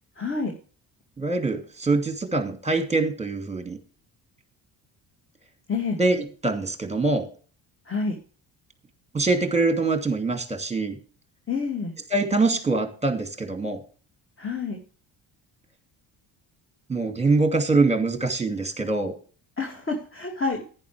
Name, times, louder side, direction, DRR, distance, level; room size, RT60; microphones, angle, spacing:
voice 1, 0.2-0.5 5.7-6.0 7.9-8.1 11.5-11.9 14.4-14.8 19.6-20.6, left 4 dB, 25° left, 2 dB, 2.6 m, -28 dB
voice 2, 1.2-3.8 6.0-7.3 9.1-11.0 12.1-13.8 16.9-19.1, right 3 dB, 15° right, 5 dB, 2.6 m, -24 dB
11.0 x 10.5 x 3.5 m, 0.40 s
hypercardioid pair, 55°, 49 cm